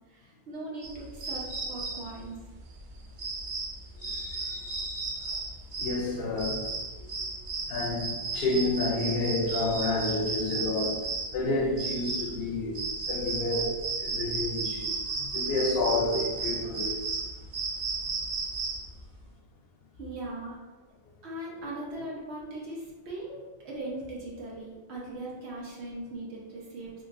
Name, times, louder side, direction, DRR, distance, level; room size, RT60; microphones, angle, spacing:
voice 1, 0.1-2.4 20.0-20.6 21.2-26.9, right 2 dB, 75° right, 1.2 m, -39 dB
sound 1, 0.8-19.0, right 3 dB, 55° right, 0.6 m, -34 dB
voice 2, 1.5-2.0 4.0-5.5 5.8-7.3 7.7-17.2 21.1-21.2, left 2 dB, 65° left, 0.7 m, -31 dB
4.0 x 3.0 x 2.5 m
omnidirectional pair, 1.1 m